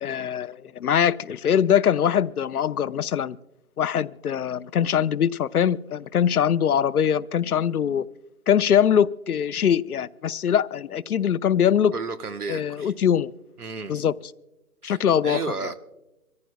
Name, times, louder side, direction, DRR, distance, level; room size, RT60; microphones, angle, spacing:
voice 1, 0.0-3.4 3.8-8.1 8.5-11.9 12.5-13.3 13.9-14.1 14.8-15.7, left 9 dB, 80° left, 0.6 m, -22 dB
voice 2, 11.9-12.9 13.6-14.0 14.8-15.0 15.2-15.7, right 4 dB, 85° right, 1.3 m, -32 dB
25.0 x 14.5 x 2.3 m
hypercardioid pair, 170°, 44 cm